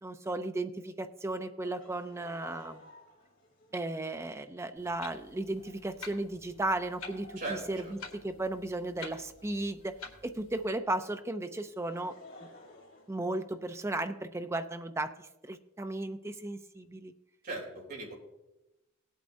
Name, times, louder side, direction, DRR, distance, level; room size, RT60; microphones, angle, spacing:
voice 1, 0.0-2.9 3.7-8.0 8.2-12.1 13.1-17.1, right 2 dB, 15° right, 9 dB, 0.4 m, -35 dB
Laughter, 1.6-10.7 11.5-13.9, left 1 dB, 55° left, 3.0 m, -56 dB
Clock, 4.8-10.7, left 4 dB, 75° left, 1.8 m, -50 dB
voice 2, 7.4-7.9 17.4-18.1, right 2 dB, 45° right, -2 dB, 3.4 m, -38 dB
18.5 x 8.3 x 2.6 m, 0.99 s
head